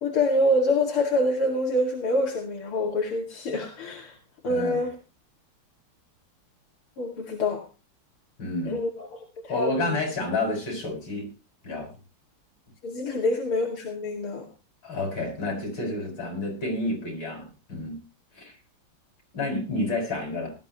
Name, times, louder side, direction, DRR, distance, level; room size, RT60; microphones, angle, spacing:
voice 1, 0.0-4.1 4.4-4.9 7.0-7.6 8.7-10.0 12.8-14.5, left 1 dB, 90° left, -1 dB, 3.1 m, -26 dB
voice 2, 4.5-4.8 8.4-8.8 9.5-11.3 11.6-11.9 14.8-18.0 18.3-18.5 19.3-20.5, left 2 dB, 65° left, 3 dB, 7.1 m, -30 dB
18.5 x 13.0 x 2.9 m, 0.31 s
omnidirectional pair, 2.3 m